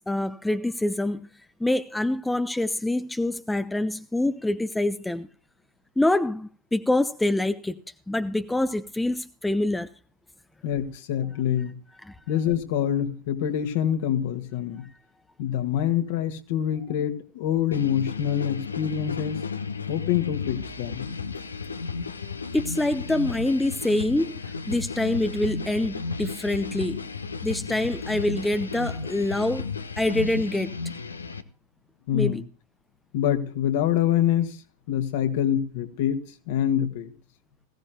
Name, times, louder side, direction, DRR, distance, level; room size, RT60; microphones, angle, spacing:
voice 1, 0.1-1.3 1.6-5.3 6.0-7.8 8.1-9.9 12.1-12.2 22.5-24.4 24.7-27.0 27.4-29.6 30.0-30.7 32.1-32.4, left 1 dB, 5° left, 0.7 m, -25 dB
voice 2, 10.6-11.8 12.3-14.9 15.4-19.4 19.9-21.1 32.1-32.5 33.1-34.6 34.9-37.1, left 10 dB, 50° left, 1.8 m, -26 dB
sound 1, 17.7-31.4, left 4 dB, 75° left, 1.0 m, -34 dB
20.0 x 16.5 x 2.2 m
figure-of-eight pair, 90°, 0 cm